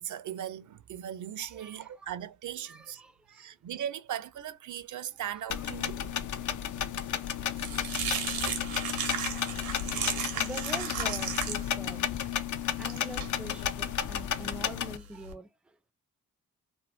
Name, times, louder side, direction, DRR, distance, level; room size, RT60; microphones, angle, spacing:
voice 1, 0.0-3.0 3.3-6.0, right 10 dB, 60° right, 0.5 m, -38 dB
voice 2, 1.4-2.1 2.7-3.5 5.2-5.3 10.3-12.1 12.8-15.5, right 2 dB, 5° right, 0.3 m, -44 dB
sound 1, 5.5-15.0, left 9 dB, 60° left, 0.5 m, -33 dB
sound 2, 7.1-15.3, right 7 dB, 85° right, 0.8 m, -36 dB
sound 3, 9.1-14.3, left 2 dB, 90° left, 1.1 m, -51 dB
2.6 x 2.1 x 3.2 m
cardioid pair, 55°, 34 cm